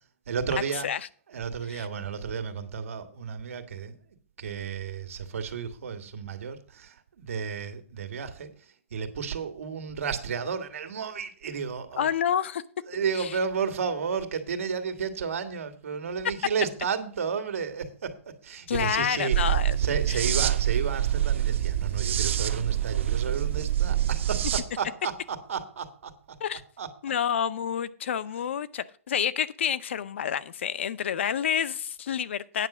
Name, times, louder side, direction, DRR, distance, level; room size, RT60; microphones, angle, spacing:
voice 1, 0.3-0.9 1.3-4.0 4.4-12.1 12.9-18.2 18.4-26.4 26.8-26.9, right 6 dB, 75° right, 1.7 m, -32 dB
voice 2, 12.0-12.6 13.2-13.3 18.7-19.8 20.1-20.2 26.4-26.6 27.0-32.7, left 8 dB, 55° left, 0.6 m, -28 dB
sound 1, 19.3-24.6, right 11 dB, 55° right, 1.1 m, -26 dB
9.3 x 5.9 x 7.1 m
hypercardioid pair, 175°, 8 cm